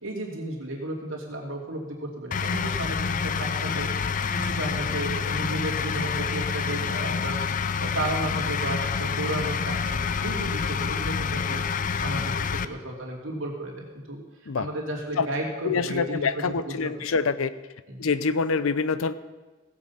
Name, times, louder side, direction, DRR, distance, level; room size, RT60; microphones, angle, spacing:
voice 1, 0.0-3.9 4.3-14.2 14.6-16.9 17.9-18.0, right 1 dB, 70° right, -2 dB, 2.8 m, -33 dB
sound 1, 2.3-12.6, left 6 dB, 40° left, 0.4 m, -28 dB
voice 2, 15.6-17.5 18.0-19.1, left 5 dB, 90° left, 15 dB, 0.6 m, -25 dB
17.0 x 7.8 x 5.6 m, 1.2 s
head